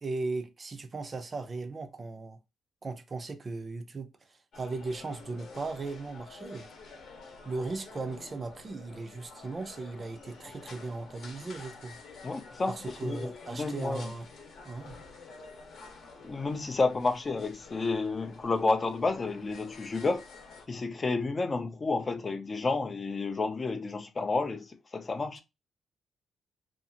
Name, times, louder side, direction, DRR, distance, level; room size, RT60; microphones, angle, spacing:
voice 1, 0.0-2.4 2.8-6.7 7.4-12.0 12.7-14.3 14.6-15.0, right 3 dB, 35° right, 0.4 m, -37 dB
sound 1, 4.5-20.7, left 4 dB, 65° left, 0.8 m, -49 dB
voice 2, 12.2-12.8 13.0-14.1 16.2-20.2 20.7-25.4, left 3 dB, 30° left, 0.4 m, -30 dB
2.6 x 2.4 x 2.7 m
cardioid pair, 90°, 0 cm